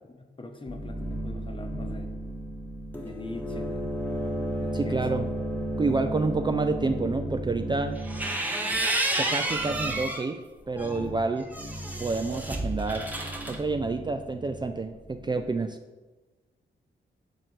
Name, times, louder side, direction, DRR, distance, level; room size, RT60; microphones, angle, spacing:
voice 1, 0.1-2.1 2.9-3.9 4.5-5.0, left 2 dB, 25° left, 5 dB, 0.9 m, -42 dB
sound 1, 0.7-8.3 9.4-10.0 10.6-11.3 11.5-15.5, right 1 dB, 10° left, 1.1 m, -34 dB
voice 2, 4.7-5.3 5.8-8.0 9.2-10.4 10.7-11.5 12.0-13.2 13.5-15.8, right 3 dB, 25° right, 7 dB, 0.4 m, -28 dB
sound 2, 8.0-10.3 10.8-13.6, right 2 dB, 10° right, 0.8 m, -30 dB
6.5 x 4.3 x 4.6 m, 1.2 s
cardioid pair, 80°, 19 cm